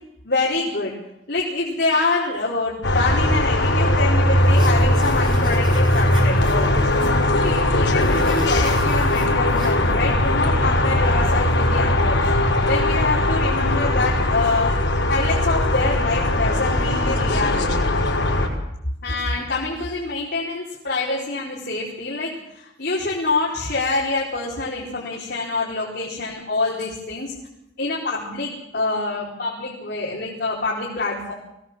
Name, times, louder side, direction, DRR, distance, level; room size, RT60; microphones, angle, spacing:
voice 1, 0.2-0.9 1.3-6.9 7.3-12.3 12.6-14.8 15.1-17.9 19.0-27.3 27.8-31.3, left 3 dB, 60° left, -5 dB, 4.6 m, -26 dB
sound 1, 2.8-18.5, left 1 dB, 80° left, 5.2 m, -19 dB
sound 2, 4.4-9.7, right 1 dB, 25° right, 7.1 m, -39 dB
24.0 x 17.5 x 7.6 m, 0.84 s
head